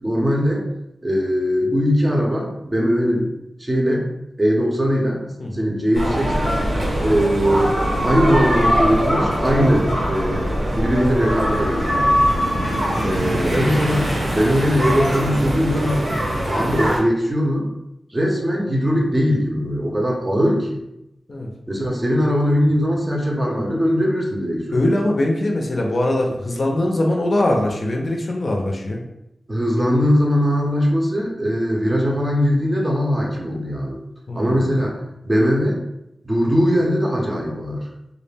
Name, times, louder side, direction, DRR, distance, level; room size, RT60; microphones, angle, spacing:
voice 1, 0.0-0.7 1.0-3.3 3.6-4.1 4.4-6.6 7.0-10.5 10.7-12.2 13.0-16.0 16.4-17.7 18.1-20.8 21.7-24.8 29.5-34.0 34.4-35.8 36.2-37.9, equal, 25° right, -2 dB, 0.6 m, -20 dB
sound 1, 5.9-17.0, equal, 90° right, 1.2 m, -21 dB
voice 2, 24.7-29.0 34.3-34.7, left 1 dB, 45° left, 0 dB, 0.4 m, -22 dB
2.3 x 2.1 x 3.3 m, 0.84 s
wide cardioid pair, 95°, 0 cm